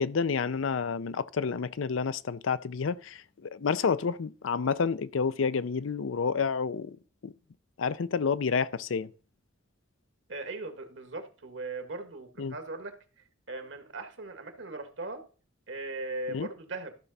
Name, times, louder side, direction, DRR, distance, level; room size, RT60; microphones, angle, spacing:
voice 1, 0.0-7.0 7.2-7.3 7.8-9.1 12.4-12.5 16.3-16.5, left 5 dB, 85° left, 0.5 m, -29 dB
voice 2, 10.3-12.9 13.5-15.2 15.7-16.9, right 2 dB, 70° right, 1.6 m, -38 dB
13.5 x 5.9 x 4.0 m
head